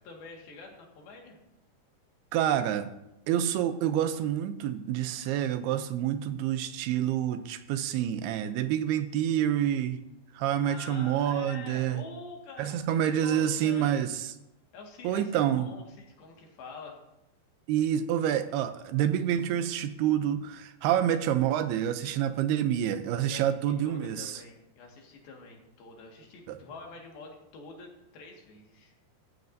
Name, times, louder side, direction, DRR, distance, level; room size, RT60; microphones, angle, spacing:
voice 1, 0.0-1.4 7.0-7.1 10.6-13.0 13.2-14.2 14.7-17.0 22.0-22.1 23.3-29.1, left 3 dB, 70° left, 0 dB, 3.7 m, -46 dB
voice 2, 2.3-2.9 3.3-10.0 10.3-12.0 12.6-14.3 15.0-15.7 17.7-24.4 26.5-26.6, right 10 dB, 80° right, 10 dB, 2.6 m, -28 dB
15.5 x 13.5 x 2.7 m, 0.88 s
omnidirectional pair, 4.7 m